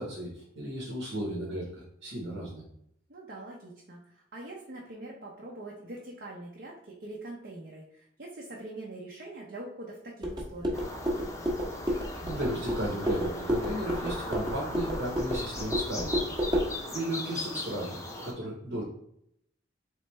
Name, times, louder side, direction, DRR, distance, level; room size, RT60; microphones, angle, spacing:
voice 1, 0.0-2.6 12.2-16.3 16.9-18.8, right 1 dB, 75° right, -4 dB, 1.2 m, -35 dB
voice 2, 3.1-10.9, right 2 dB, 60° right, -3 dB, 0.7 m, -43 dB
sound 1, 10.2-16.7, equal, 25° right, 0.8 m, -31 dB
sound 2, 10.7-18.3, left 2 dB, 15° left, 0.6 m, -38 dB
3.9 x 3.3 x 3.2 m, 0.72 s
head